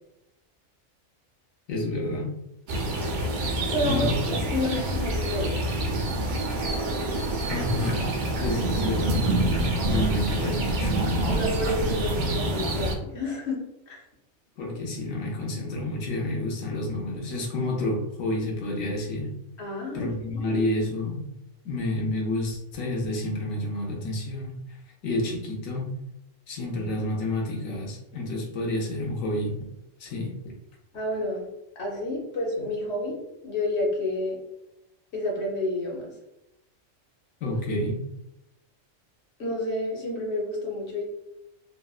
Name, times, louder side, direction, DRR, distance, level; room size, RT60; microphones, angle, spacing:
voice 1, 1.7-2.3 3.8-4.4 7.5-8.1 8.4-9.3 9.8-11.0 14.6-19.3 19.9-21.2 21.6-24.6 25.0-25.9 26.5-29.7 30.0-30.3 37.4-38.0, left 1 dB, 85° left, -1 dB, 1.1 m, -29 dB
sound 1, 2.7-13.0, right 1 dB, 90° right, 0.4 m, -27 dB
voice 2, 3.7-5.9 11.3-14.0 19.6-20.6 30.9-31.5 31.8-33.2 33.4-34.4 35.1-36.1 39.4-41.0, left 1 dB, 60° left, -2 dB, 1.1 m, -30 dB
3.3 x 2.1 x 2.4 m, 0.85 s
omnidirectional pair, 1.4 m